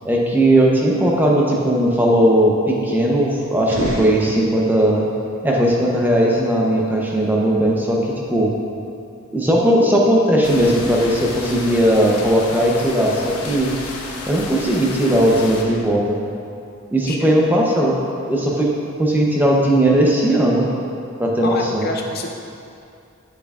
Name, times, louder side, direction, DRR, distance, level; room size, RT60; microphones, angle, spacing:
voice 1, 0.0-5.1 5.4-8.5 9.3-13.7 14.2-16.2 16.9-18.0 18.3-18.7 19.0-20.7 21.2-21.9, right 1 dB, 10° right, -2 dB, 0.7 m, -17 dB
sound 1, 3.6-4.9, right 1 dB, 70° right, 1.7 m, -27 dB
sound 2, 10.4-15.6, left 3 dB, 90° left, 0.9 m, -32 dB
voice 2, 21.4-22.3, left 3 dB, 45° left, 1 dB, 0.5 m, -27 dB
9.8 x 7.0 x 2.4 m, 2.5 s
head